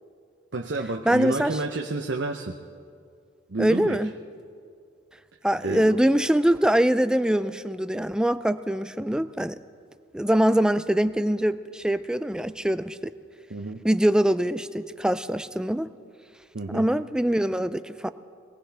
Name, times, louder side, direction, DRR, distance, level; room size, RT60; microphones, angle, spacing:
voice 1, 0.5-2.6 3.5-4.0 5.6-6.0 13.5-13.8 16.5-16.9, right 2 dB, 65° right, 3 dB, 0.7 m, -30 dB
voice 2, 1.1-1.6 3.6-4.1 5.4-9.6 10.1-13.1 13.8-15.9 16.7-18.1, right 1 dB, 5° right, 13 dB, 0.3 m, -23 dB
22.0 x 18.5 x 3.4 m, 2.3 s
head